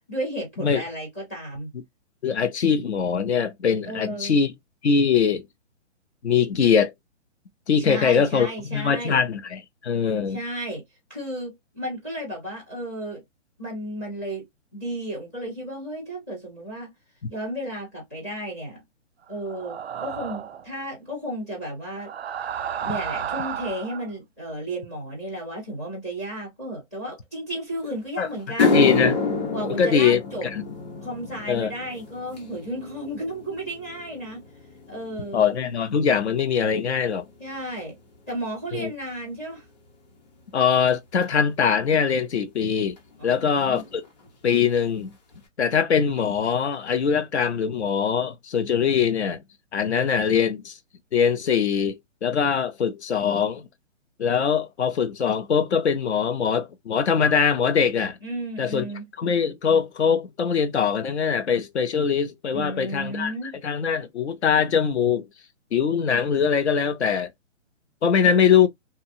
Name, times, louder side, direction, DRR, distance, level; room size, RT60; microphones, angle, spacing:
voice 1, 0.1-1.7 3.8-4.3 7.8-9.2 10.3-10.8 11.1-13.2 13.6-14.4 14.7-16.9 17.3-18.8 19.3-22.1 22.8-28.8 29.5-30.5 31.0-34.4 34.9-35.4 37.4-38.0 38.3-39.6 43.2-43.8 58.2-59.0 62.5-63.5 68.2-68.5, right 1 dB, 15° left, 0.7 m, -33 dB
voice 2, 2.2-4.5 4.8-5.5 6.2-6.9 7.7-10.4 28.2-28.3 28.6-29.2 29.8-30.6 31.5-31.7 35.3-37.3 38.7-38.9 40.5-43.0 43.2-44.0 44.4-45.1 45.6-49.4 49.7-50.7 51.1-53.7 54.2-58.2 58.6-58.9 59.2-63.3 63.6-65.3 65.7-67.3 68.0-68.7, left 6 dB, 60° left, 0.8 m, -22 dB
sound 1, 19.5-20.7 21.9-24.1, right 8 dB, 55° right, 0.5 m, -32 dB
sound 2, 27.9-28.0 28.4-36.9 37.2-37.6 38.4-38.5 41.2-41.3 43.0-43.1 43.2-43.5 43.7-44.3 44.7-44.8 45.3-45.4, left 3 dB, 35° left, 1.1 m, -29 dB
2.8 x 2.3 x 2.6 m
hypercardioid pair, 170°, 38 cm